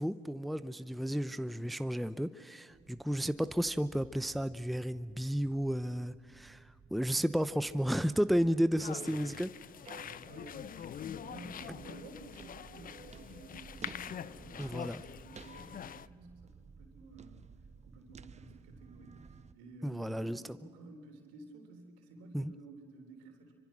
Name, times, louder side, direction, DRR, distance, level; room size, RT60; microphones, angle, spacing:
voice 1, 0.0-6.6 6.9-9.5 11.7-11.8 14.6-15.0 19.8-20.4 22.3-22.5, equal, ahead, 13 dB, 0.7 m, -32 dB
sound 1, 2.7-19.5, right 5 dB, 35° right, 1.1 m, -55 dB
sound 2, 8.8-16.1, left 9 dB, 45° left, 0.6 m, -45 dB
voice 2, 10.2-17.5 17.8-23.5, right 3 dB, 80° right, 3 dB, 3.6 m, -53 dB
26.5 x 24.5 x 6.3 m, 2.1 s
hypercardioid pair, 55°, 20 cm